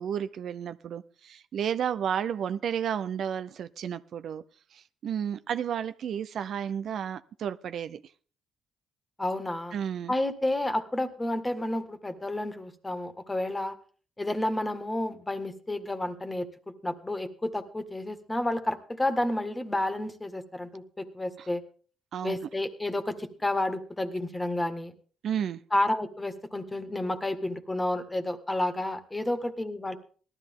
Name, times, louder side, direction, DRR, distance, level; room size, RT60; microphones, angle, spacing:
voice 1, 0.0-4.4 4.7-8.0 9.7-10.1 21.4-21.5 22.1-22.4 25.2-25.6, right 8 dB, 65° right, 0.5 m, -32 dB
voice 2, 9.2-9.7 10.1-13.7 14.2-16.5 16.8-21.6 22.2-24.9 25.7-30.0, left 1 dB, 15° left, 1.7 m, -30 dB
18.0 x 13.0 x 3.7 m
cardioid pair, 90°, 0 cm